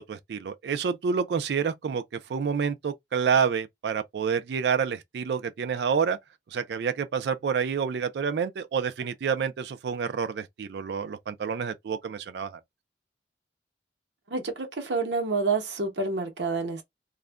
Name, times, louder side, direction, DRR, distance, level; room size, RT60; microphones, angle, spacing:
voice 1, 0.0-2.0 2.3-6.2 6.5-12.6, right 6 dB, 70° right, 0.3 m, -28 dB
voice 2, 14.3-16.8, right 3 dB, 90° right, 0.9 m, -28 dB
2.4 x 2.1 x 3.4 m
head